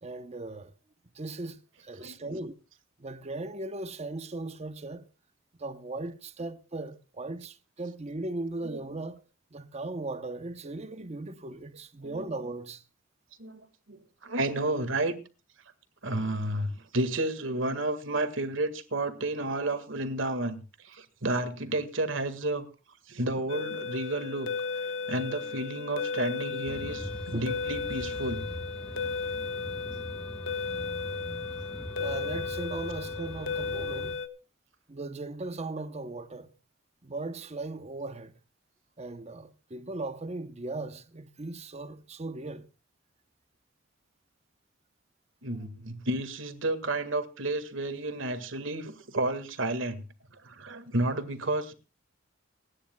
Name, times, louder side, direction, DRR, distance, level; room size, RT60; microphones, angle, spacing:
voice 1, 0.0-0.7 1.1-2.5 3.0-5.1 5.6-9.2 9.5-12.8 27.3-27.5 30.8-30.9 32.0-34.2 34.9-36.5 37.0-38.3 39.0-42.7 51.5-51.6, right 2 dB, 35° right, 0.8 m, -38 dB
voice 2, 13.4-15.2 16.0-22.7 23.1-24.5 25.1-28.5 28.8-28.9 45.4-50.0 50.3-51.7, right 2 dB, 75° right, 1.8 m, -31 dB
sound 1, 23.5-34.3, left 5 dB, 70° left, 1.3 m, -35 dB
sound 2, 26.7-34.1, equal, 5° left, 1.5 m, -42 dB
30.0 x 10.0 x 2.3 m
head